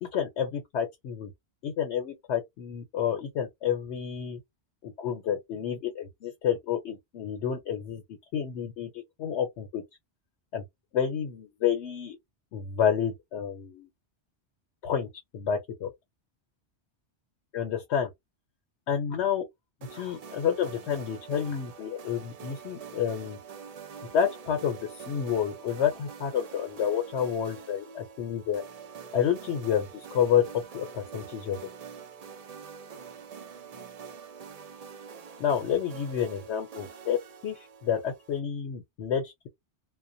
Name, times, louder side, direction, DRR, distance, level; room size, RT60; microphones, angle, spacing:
voice 1, 0.0-1.3 1.6-4.4 4.8-8.0 8.3-9.8 10.5-10.6 10.9-12.2 12.5-13.9 14.8-15.1 15.3-15.9 17.5-18.1 18.9-19.4 19.9-23.4 24.1-28.6 29.1-31.6 35.4-39.5, left 8 dB, 80° left, 0.9 m, -29 dB
sound 1, 19.8-38.4, right 6 dB, 55° right, 0.4 m, -45 dB
2.3 x 2.1 x 2.6 m
omnidirectional pair, 1.1 m